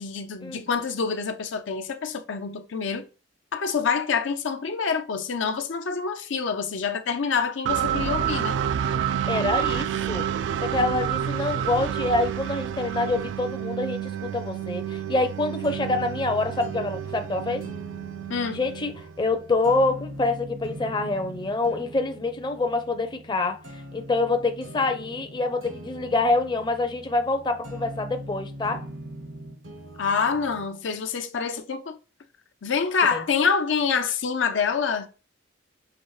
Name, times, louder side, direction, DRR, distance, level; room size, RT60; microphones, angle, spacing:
voice 1, 0.0-3.0 3.5-8.5 18.3-18.6 30.0-32.0 32.6-35.1, left 5 dB, 85° left, 0.6 m, -26 dB
sound 1, 7.6-19.4, right 9 dB, 70° right, 0.3 m, -29 dB
voice 2, 9.3-10.3 10.7-17.7 18.5-28.9 33.1-33.2, left 2 dB, 25° left, 0.5 m, -26 dB
sound 2, 14.6-30.7, equal, 85° right, 1.0 m, -42 dB
5.9 x 2.4 x 3.1 m
head